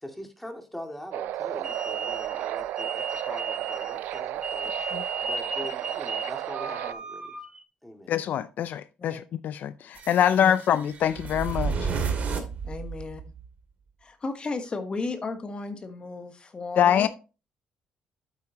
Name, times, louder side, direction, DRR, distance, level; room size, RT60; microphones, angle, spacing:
voice 1, 0.0-4.9 5.2-7.4 7.8-8.1, left 1 dB, 5° left, 2.2 m, -42 dB
sound 1, 1.1-6.9, right 13 dB, 80° right, 0.4 m, -33 dB
sound 2, 1.6-7.6, right 3 dB, 25° right, 1.4 m, -35 dB
voice 2, 8.1-9.2 9.4-11.9 16.8-17.1, left 9 dB, 65° left, 0.5 m, -24 dB
sound 3, 9.9-13.4, right 5 dB, 50° right, 2.6 m, -32 dB
voice 3, 12.6-13.2 14.0-17.1, left 3 dB, 30° left, 1.3 m, -34 dB
8.4 x 8.1 x 2.9 m
cardioid pair, 90°, 3 cm